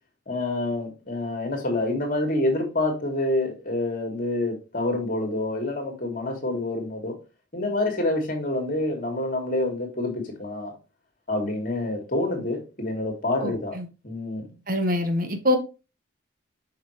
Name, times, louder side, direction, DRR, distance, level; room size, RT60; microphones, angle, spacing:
voice 1, 0.3-7.2 7.5-10.7 11.3-13.8 14.0-14.5, left 2 dB, 40° left, 2.7 m, -27 dB
voice 2, 13.4-13.8 14.7-15.6, left 1 dB, 45° right, 1.3 m, -24 dB
7.2 x 5.6 x 3.3 m
head